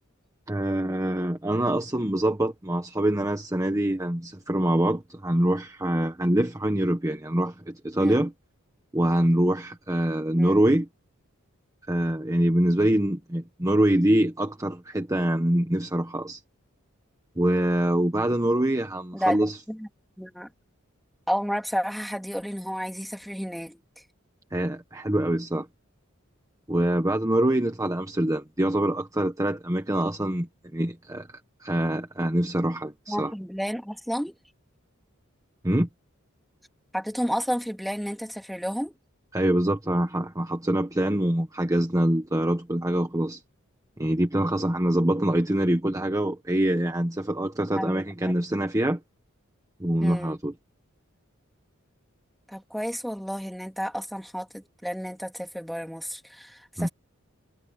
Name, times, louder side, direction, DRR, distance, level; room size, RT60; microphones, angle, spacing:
voice 1, 0.5-8.3 8.9-10.9 11.9-16.4 17.4-19.6 24.5-25.7 26.7-31.3 31.6-33.3 35.6-35.9 39.3-43.4 44.0-49.0 49.8-50.5 56.8-56.9, right 1 dB, 15° right, 1.3 m, -24 dB
voice 2, 20.2-20.5 21.3-23.8 33.1-34.3 36.9-38.9 47.7-48.3 50.0-50.3 52.5-56.9, equal, ahead, 3.6 m, -31 dB
head